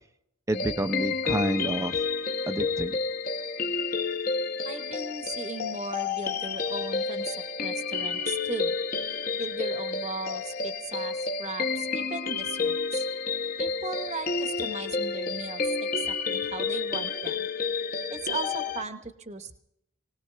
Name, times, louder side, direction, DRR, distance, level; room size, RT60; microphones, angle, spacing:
sound 1, 0.5-18.8, left 4 dB, 40° left, 0.9 m, -30 dB
voice 1, 0.5-2.0 2.5-3.0, right 1 dB, 15° right, 8 dB, 0.6 m, -29 dB
voice 2, 4.6-8.8 9.4-13.1 13.6-17.5 18.1-19.6, right 3 dB, 35° right, 8 dB, 1.1 m, -37 dB
20.5 x 19.0 x 3.4 m, 0.76 s
head